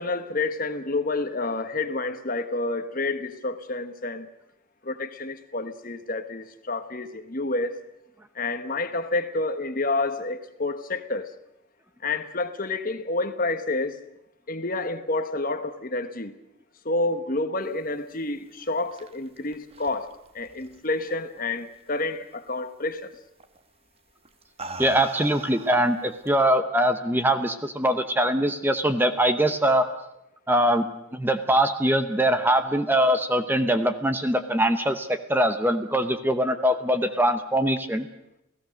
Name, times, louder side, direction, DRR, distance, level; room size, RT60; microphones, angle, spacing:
voice 1, 0.0-4.3 4.8-7.8 8.3-11.3 12.0-14.0 14.5-16.3 16.8-23.1, left 2 dB, 40° left, 1.2 m, -29 dB
sound 1, 18.5-21.4 21.7-22.2 23.4-23.6 24.3-26.4, right 3 dB, 25° right, 1.1 m, -42 dB
voice 2, 24.8-29.9 30.5-38.1, right 1 dB, 10° right, 0.9 m, -22 dB
29.5 x 17.0 x 6.4 m
head